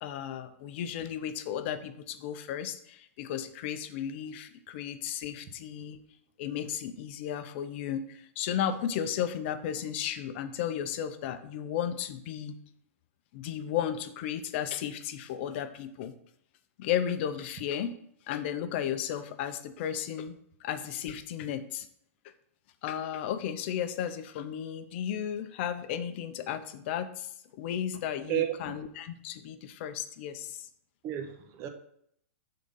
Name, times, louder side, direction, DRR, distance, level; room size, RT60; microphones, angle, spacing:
voice 1, 0.0-6.0 6.4-12.6 13.3-16.1 16.8-17.9 18.3-20.3 20.6-21.9 22.8-27.3 27.6-30.7, left 9 dB, 50° left, 10 dB, 0.6 m, -34 dB
voice 2, 28.3-28.8 31.0-31.7, right 12 dB, 35° right, 6 dB, 0.9 m, -32 dB
6.3 x 3.8 x 5.2 m, 0.70 s
hypercardioid pair, 125°, 8 cm